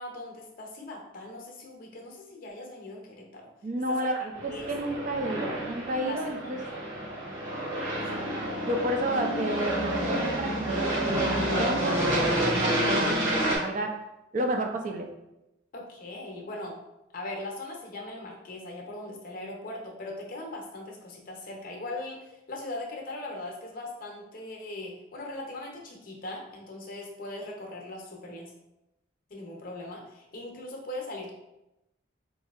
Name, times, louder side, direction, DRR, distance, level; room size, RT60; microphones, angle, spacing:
voice 1, 0.0-3.5 3.9-4.0 4.5-4.7 6.0-6.5 8.0-8.3 15.7-16.8 17.1-28.5 29.3-31.3, left 2 dB, 45° left, 0 dB, 0.6 m, -40 dB
voice 2, 3.6-6.6 8.7-14.0 14.3-15.1, right 1 dB, 40° right, 3 dB, 0.3 m, -31 dB
Aircraft, 4.3-13.6, right 1 dB, 80° right, 1.2 m, -29 dB
4.0 x 2.6 x 2.4 m, 0.91 s
head